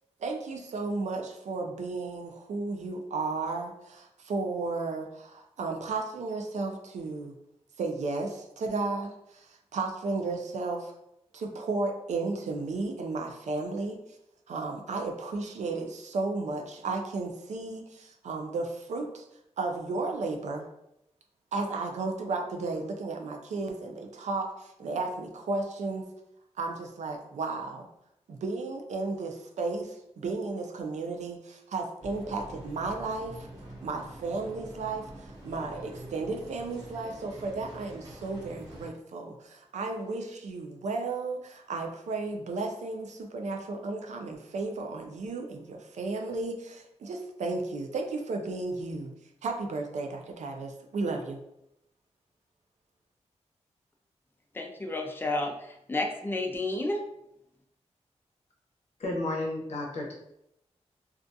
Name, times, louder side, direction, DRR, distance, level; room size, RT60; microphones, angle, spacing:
voice 1, 0.2-7.3 7.8-10.9 11.3-14.0 14.5-19.2 19.6-20.6 21.5-26.1 26.6-27.9 28.3-33.5 33.8-49.1 49.4-51.4, right 3 dB, 90° right, 3 dB, 0.4 m, -34 dB
sound 1, 32.0-38.9, right 1 dB, 35° right, 1.0 m, -46 dB
voice 2, 54.5-57.0, left 2 dB, 20° left, 2 dB, 0.4 m, -31 dB
voice 3, 59.0-60.1, left 2 dB, 65° left, -2 dB, 0.7 m, -32 dB
2.4 x 2.2 x 2.6 m, 0.82 s
wide cardioid pair, 85°, 12 cm